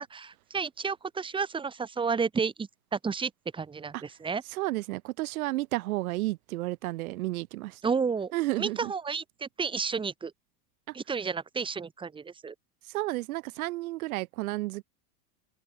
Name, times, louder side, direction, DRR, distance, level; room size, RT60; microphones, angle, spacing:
voice 1, 0.1-4.4 7.8-8.3 8.6-10.3 10.9-12.5, right 5 dB, 10° right, 3.4 m, -31 dB
voice 2, 4.5-7.8 8.3-8.9 10.9-11.0 12.9-14.8, right 19 dB, 75° right, 2.3 m, -32 dB
open air
supercardioid pair, 170°, 43 cm